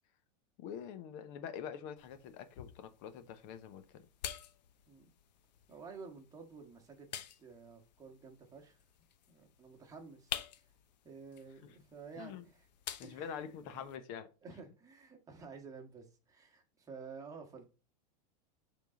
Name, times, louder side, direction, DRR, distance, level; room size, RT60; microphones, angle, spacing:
voice 1, 0.6-4.0 11.6-11.7 12.2-12.4 13.0-14.3, left 8 dB, 50° left, 1.0 m, -45 dB
sound 1, 2.0-14.0, left 10 dB, 85° left, 0.8 m, -49 dB
voice 2, 5.7-7.1 7.4-8.8 9.3-10.3 11.0-12.7 13.0-13.9 14.4-17.7, right 5 dB, 15° right, 1.5 m, -51 dB
7.2 x 3.8 x 3.9 m
supercardioid pair, 140°, 21 cm